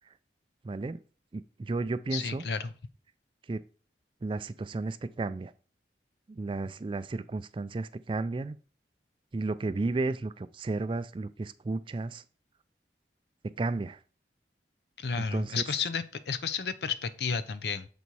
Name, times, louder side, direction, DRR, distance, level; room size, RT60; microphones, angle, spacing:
voice 1, 0.6-1.0 1.3-2.4 3.5-3.6 4.2-5.5 6.3-8.6 9.3-12.2 13.6-14.0 15.2-15.6, right 3 dB, 30° right, 14 dB, 0.3 m, -33 dB
voice 2, 2.1-2.7 15.0-17.9, left 5 dB, 70° left, 12 dB, 0.6 m, -32 dB
7.0 x 4.1 x 4.6 m, 0.38 s
head